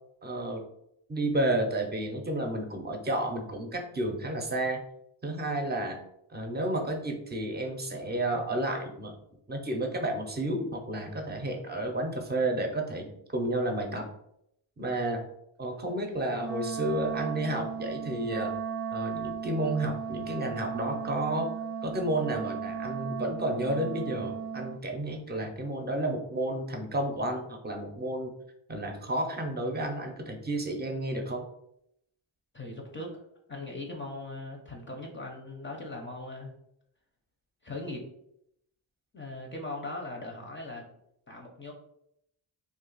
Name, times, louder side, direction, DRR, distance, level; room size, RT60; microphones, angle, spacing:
voice 1, 0.2-0.6 1.1-4.8 5.2-6.0 6.3-9.1 9.5-13.1 13.3-14.1 14.8-15.2 15.6-18.5 18.9-21.5 21.8-28.3 28.7-31.5, right 1 dB, 20° right, 3 dB, 0.7 m, -31 dB
Wind instrument woodwind instrument, 16.4-24.8, right 6 dB, 65° right, 0.5 m, -36 dB
voice 2, 32.5-36.5 37.6-38.0 39.1-40.8 41.3-41.7, left 2 dB, 25° left, 0 dB, 0.6 m, -39 dB
2.5 x 2.4 x 3.9 m, 0.75 s
cardioid pair, 75°, 48 cm